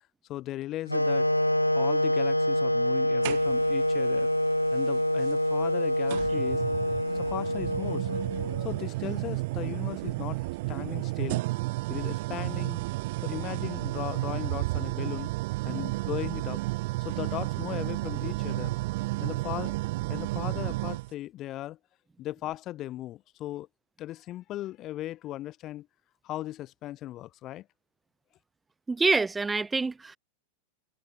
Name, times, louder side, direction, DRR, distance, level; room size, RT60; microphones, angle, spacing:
voice 1, 0.3-1.3 1.8-4.3 4.7-6.6 7.1-8.1 8.6-11.4 11.9-12.8 13.2-15.3 15.6-16.6 17.0-18.8 19.2-19.8 20.1-21.8 22.2-23.7 24.0-25.9 26.2-27.7, left 14 dB, 35° left, 2.0 m, -37 dB
sound 1, 0.9-8.9, left 1 dB, 90° left, 0.3 m, -26 dB
sound 2, 3.2-3.9 5.2-5.3 6.1-21.1, right 21 dB, 50° right, 0.4 m, -32 dB
voice 2, 28.9-30.2, right 3 dB, 10° right, 0.8 m, -26 dB
figure-of-eight pair, 90°, 0 cm